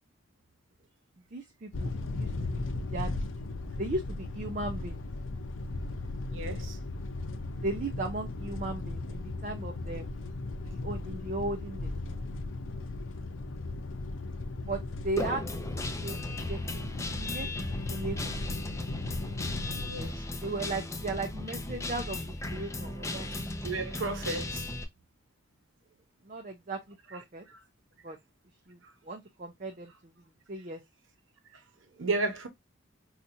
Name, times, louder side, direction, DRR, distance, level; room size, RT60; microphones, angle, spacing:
voice 1, 1.3-3.2 3.7-5.0 7.5-10.2 10.7-11.9 14.7-15.4 16.0-18.3 20.4-23.4 26.2-27.4 28.0-28.2 28.7-30.1 30.5-30.8 31.9-32.0, right 2 dB, 40° right, 0.5 m, -37 dB
sound 1, 1.7-20.1, left 2 dB, 85° left, 0.6 m, -37 dB
voice 2, 6.3-6.8 19.8-20.2 23.6-24.6 32.0-32.5, right 3 dB, 90° right, 0.9 m, -33 dB
Guitar, 15.2-24.8, left 2 dB, 15° left, 0.5 m, -36 dB
4.2 x 2.4 x 2.6 m
head